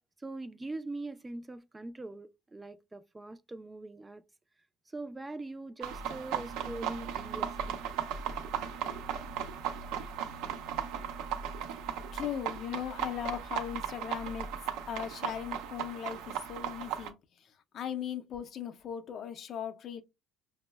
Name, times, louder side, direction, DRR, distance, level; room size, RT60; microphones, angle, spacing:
voice 1, 0.2-4.2 4.9-7.8, right 2 dB, 15° right, 0.3 m, -42 dB
sound 1, 5.8-17.1, right 8 dB, 80° right, 0.5 m, -37 dB
voice 2, 12.1-14.6 14.9-17.2 17.7-20.0, left 9 dB, 55° left, 0.5 m, -38 dB
5.1 x 2.0 x 2.2 m
supercardioid pair, 100°, 0 cm